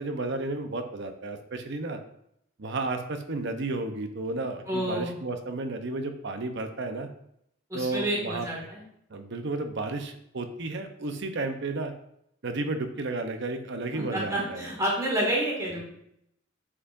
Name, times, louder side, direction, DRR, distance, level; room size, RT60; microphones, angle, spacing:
voice 1, 0.0-2.0 2.6-7.1 7.7-8.5 9.1-11.9 12.4-14.7, right 2 dB, 60° right, 7 dB, 0.8 m, -32 dB
voice 2, 4.7-5.1 7.7-8.8 13.9-15.9, right 1 dB, 15° right, -4 dB, 2.2 m, -29 dB
8.5 x 4.9 x 2.6 m, 0.74 s
head